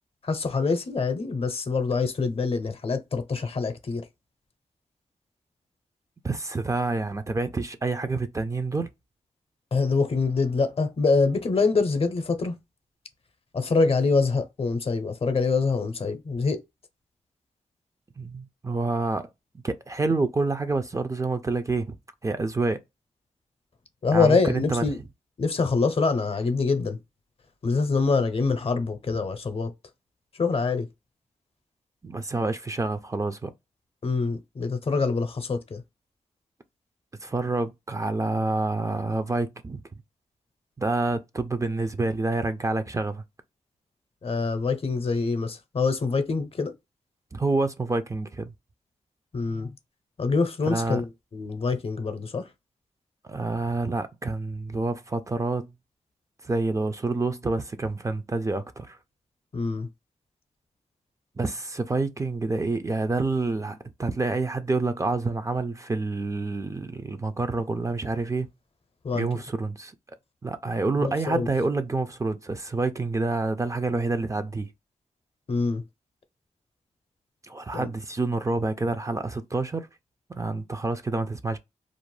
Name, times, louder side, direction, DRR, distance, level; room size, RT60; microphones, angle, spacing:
voice 1, 0.2-4.1 9.7-12.6 13.5-16.6 24.0-25.0 25.4-27.0 27.6-29.7 30.3-30.9 34.0-35.8 44.2-46.7 49.3-49.7 50.2-52.5 59.5-59.9 69.0-69.3 70.9-71.5 75.5-75.8 77.7-77.9, left 4 dB, 50° left, 0.6 m, -25 dB
voice 2, 6.2-8.9 18.2-19.3 19.6-22.0 22.2-22.8 24.1-24.8 32.0-33.5 37.2-39.8 40.8-43.2 47.3-48.5 50.6-51.0 53.2-55.7 56.4-59.0 61.4-68.5 69.1-69.9 70.4-74.7 77.4-79.9 80.3-81.6, right 3 dB, 25° right, 0.3 m, -28 dB
2.4 x 2.0 x 3.2 m
cardioid pair, 65°, 13 cm